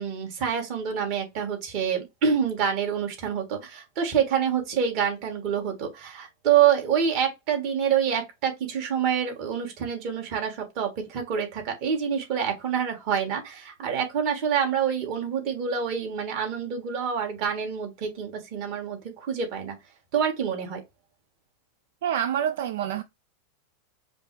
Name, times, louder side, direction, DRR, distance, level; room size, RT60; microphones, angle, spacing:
voice 1, 0.0-19.8 20.1-20.8, right 8 dB, 35° right, 1.5 m, -27 dB
voice 2, 22.0-23.0, right 9 dB, 65° right, 0.4 m, -27 dB
5.1 x 2.0 x 4.6 m
supercardioid pair, 175°, 0 cm